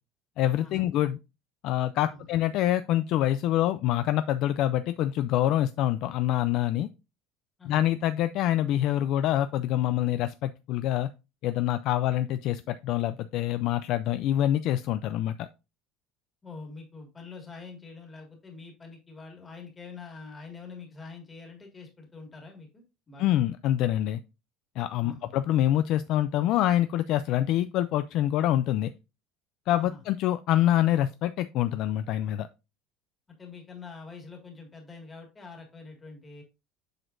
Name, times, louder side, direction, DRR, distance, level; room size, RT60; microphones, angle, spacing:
voice 1, 0.4-1.2 1.6-6.9 7.7-11.1 11.4-15.5 23.2-24.2 24.8-28.9 29.7-32.5, left 13 dB, 45° left, 12 dB, 0.3 m, -26 dB
voice 2, 16.4-23.5 25.0-25.3 29.7-30.0 33.4-36.4, left 4 dB, 15° left, 2 dB, 1.9 m, -45 dB
7.7 x 6.2 x 2.5 m, 0.28 s
cardioid pair, 175°, 0 cm